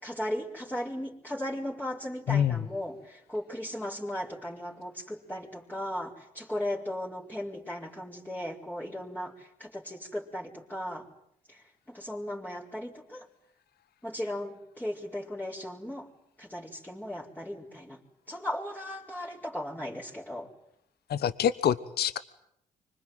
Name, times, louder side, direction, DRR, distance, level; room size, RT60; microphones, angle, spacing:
voice 1, 0.0-11.1 11.5-13.3 14.0-16.1 16.4-18.0 18.3-20.5, left 1 dB, 10° left, -5 dB, 4.7 m, -37 dB
voice 2, 2.3-2.6 21.1-22.2, left 9 dB, 60° left, 15 dB, 1.1 m, -26 dB
25.5 x 25.0 x 9.3 m, 0.77 s
hypercardioid pair, 40°, 19 cm